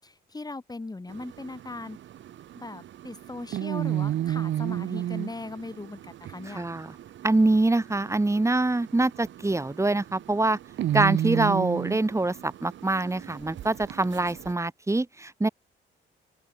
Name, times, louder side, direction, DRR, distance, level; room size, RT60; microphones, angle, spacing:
voice 1, 0.0-2.0 2.5-6.6, left 3 dB, 20° left, 6.4 m, -39 dB
sound 1, 1.1-14.5, right 12 dB, 70° right, 1.7 m, -33 dB
voice 2, 6.5-6.9 7.2-10.6 10.9-15.5, right 2 dB, 15° right, 2.7 m, -25 dB
open air
cardioid pair, 90°, 20 cm